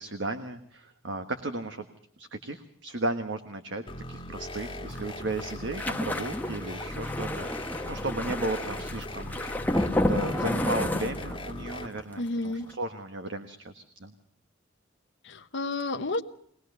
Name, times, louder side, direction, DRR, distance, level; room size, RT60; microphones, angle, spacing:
voice 1, 0.0-1.9 2.2-9.7 10.1-14.1, right 2 dB, 60° right, 7 dB, 1.4 m, -35 dB
sound 1, 3.9-11.9, left 1 dB, 25° left, 1.7 m, -39 dB
sound 2, 4.9-11.7 12.0-12.3 12.5-12.7, left 1 dB, 10° left, 1.1 m, -31 dB
voice 2, 12.2-12.7 15.2-16.2, left 2 dB, 60° left, 5 dB, 1.1 m, -31 dB
22.5 x 19.0 x 6.7 m, 0.67 s
head